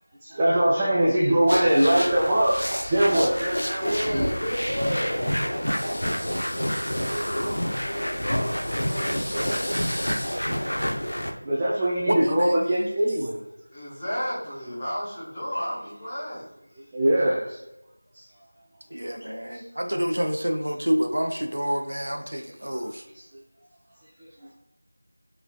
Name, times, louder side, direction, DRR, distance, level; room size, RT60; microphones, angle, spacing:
voice 1, 0.2-4.2 9.3-9.7 10.7-10.8 11.4-13.4 16.8-17.6 18.1-18.5 19.5-19.6 22.7-22.8 24.2-24.5, right 1 dB, 10° right, -7 dB, 0.3 m, -23 dB
sound 1, 1.5-11.3, equal, 75° left, 0.6 m, -28 dB
voice 2, 3.8-5.7 6.0-9.8 13.7-16.5, equal, 10° left, -12 dB, 0.9 m, -33 dB
sound 2, 5.7-10.9, equal, 30° left, 1.1 m, -38 dB
voice 3, 12.1-12.9 18.9-23.1, equal, 70° right, 5 dB, 0.5 m, -28 dB
4.8 x 3.3 x 2.2 m, 0.89 s
figure-of-eight pair, 175°, 0 cm